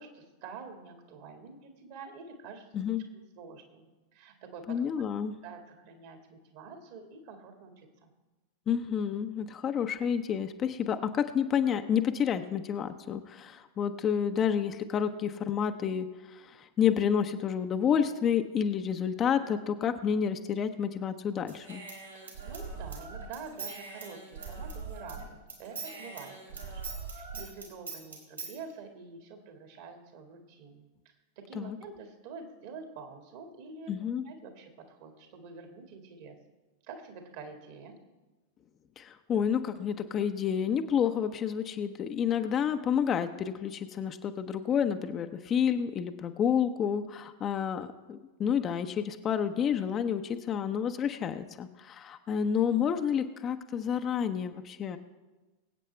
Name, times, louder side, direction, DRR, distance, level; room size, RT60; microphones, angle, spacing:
voice 1, 0.0-2.7 3.4-4.8 5.4-8.1 22.1-26.8 27.1-30.9 31.4-33.9 34.2-36.4 36.8-38.0, right 4 dB, 50° right, 5 dB, 2.0 m, -47 dB
voice 2, 2.7-3.0 4.7-5.4 8.7-21.8 31.5-31.8 33.9-34.2 39.0-55.0, left 8 dB, 30° left, 8 dB, 0.7 m, -29 dB
Human voice / Scissors, 21.5-25.2 25.5-28.5, right 4 dB, 80° right, 2.9 m, -41 dB
23.0 x 8.4 x 3.4 m, 1.2 s
figure-of-eight pair, 90°, 0 cm